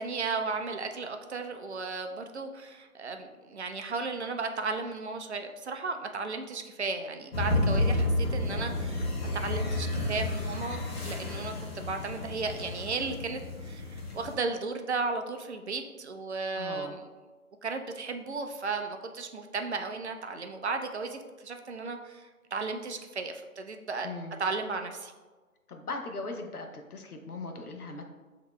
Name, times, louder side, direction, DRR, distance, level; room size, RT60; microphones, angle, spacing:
voice 1, 0.0-17.0 17.6-24.1 24.4-25.1, right 4 dB, 50° right, 6 dB, 0.5 m, -35 dB
sound 1, 7.3-14.3, left 2 dB, 45° left, 1.0 m, -31 dB
voice 2, 16.5-17.0 24.0-24.3 25.7-28.0, left 3 dB, 85° left, 3 dB, 0.8 m, -39 dB
7.5 x 2.8 x 2.2 m, 1.3 s
figure-of-eight pair, 145°, 44 cm